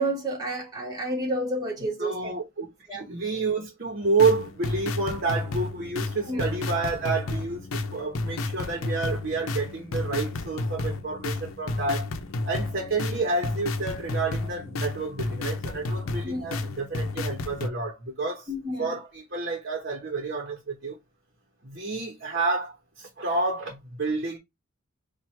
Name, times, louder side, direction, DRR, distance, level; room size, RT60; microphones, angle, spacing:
voice 1, 0.0-2.3 2.9-3.1 6.3-6.4 16.2-16.5 18.5-18.9, right 1 dB, 20° right, 1.6 m, -30 dB
voice 2, 2.0-7.6 7.9-12.0 12.5-18.5 18.8-21.0 21.6-24.4, right 3 dB, 50° right, 1.1 m, -29 dB
sound 1, 4.0-17.7, left 2 dB, 85° left, 0.6 m, -32 dB
4.6 x 2.5 x 4.5 m
head